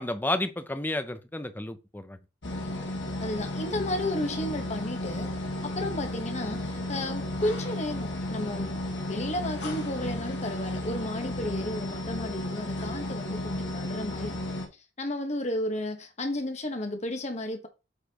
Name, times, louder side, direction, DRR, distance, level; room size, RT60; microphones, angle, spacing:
voice 1, 0.0-2.2, left 1 dB, 10° left, 0.6 m, -31 dB
sound 1, 2.4-14.7, left 1 dB, 65° left, 1.5 m, -33 dB
voice 2, 3.2-5.3 5.7-14.3 15.0-17.7, left 1 dB, 35° left, 1.3 m, -33 dB
8.1 x 4.2 x 2.9 m
head